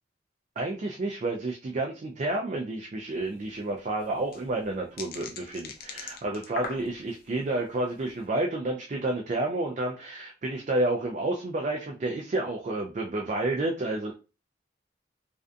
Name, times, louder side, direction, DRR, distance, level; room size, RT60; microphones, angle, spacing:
voice 1, 0.6-14.1, right 2 dB, 35° right, 1 dB, 0.3 m, -30 dB
sound 1, 3.2-3.3 3.5-3.6 4.0-7.3 7.8-8.1, left 5 dB, 50° left, 0.4 m, -40 dB
2.5 x 2.2 x 2.5 m, 0.32 s
head